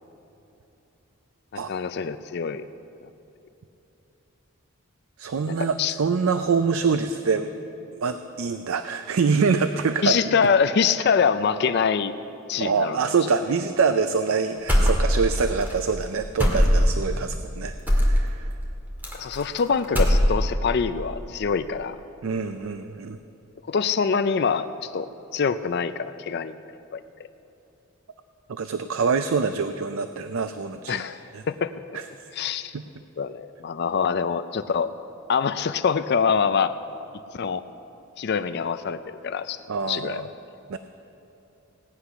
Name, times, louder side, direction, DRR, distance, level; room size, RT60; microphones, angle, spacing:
voice 1, 1.7-2.6 3.0-3.1 5.5-5.9 10.0-12.1 12.5-13.0 19.1-22.0 23.7-26.6 26.9-27.0 30.9-31.2 31.5-31.7 32.3-32.7 33.2-34.9 35.3-36.7 37.3-37.6 38.2-39.6 39.9-40.2, left 6 dB, 50° left, 12 dB, 0.4 m, -24 dB
voice 2, 5.2-7.5 8.0-10.2 12.6-18.5 22.2-23.2 28.5-31.0 31.3-31.4 31.9-32.1 32.7-32.8 39.7-40.3 40.7-40.8, right 5 dB, 70° right, 9 dB, 0.5 m, -25 dB
sound 1, 14.7-15.4 15.6-15.8 16.4-17.0 17.9-18.2 19.0-19.6 19.8-20.6, equal, 10° right, 2.0 m, -19 dB
17.5 x 9.8 x 5.7 m, 3.0 s
head